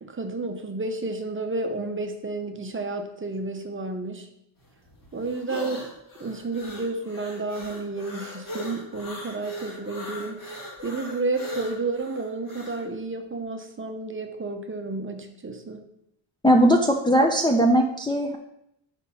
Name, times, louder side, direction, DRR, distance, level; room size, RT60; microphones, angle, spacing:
voice 1, 0.0-4.3 5.1-5.8 6.2-15.9, right 3 dB, 25° right, 5 dB, 0.7 m, -31 dB
sound 1, 4.6-12.8, left 1 dB, 45° left, 2.2 m, -39 dB
voice 2, 16.4-18.4, equal, 10° left, 1 dB, 0.5 m, -19 dB
5.3 x 3.9 x 5.6 m, 0.76 s
wide cardioid pair, 120°, 46 cm